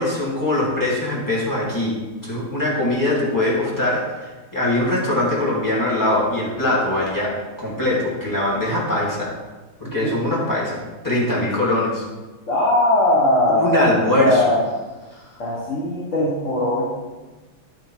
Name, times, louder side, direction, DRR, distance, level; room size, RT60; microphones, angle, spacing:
voice 1, 0.0-1.9 2.2-9.3 9.8-12.0 13.5-14.5 15.1-15.3, left 1 dB, 10° left, -6 dB, 1.9 m, -22 dB
voice 2, 12.5-13.8 14.1-14.6 15.4-16.9, left 1 dB, 40° left, -6 dB, 1.4 m, -19 dB
10.5 x 4.6 x 4.5 m, 1.2 s
omnidirectional pair, 2.4 m